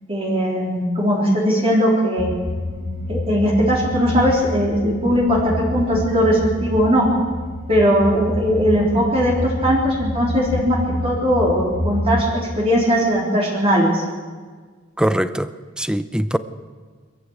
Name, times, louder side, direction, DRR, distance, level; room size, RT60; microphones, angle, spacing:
voice 1, 0.1-2.3 3.1-7.1 7.7-10.8 11.0-12.3 12.6-14.0, equal, 30° right, -3 dB, 3.8 m, -19 dB
sound 1, 2.2-12.2, equal, 50° left, 2.7 m, -28 dB
voice 2, 15.0-16.4, equal, 5° right, 12 dB, 0.7 m, -22 dB
22.5 x 14.5 x 8.2 m, 1.5 s
head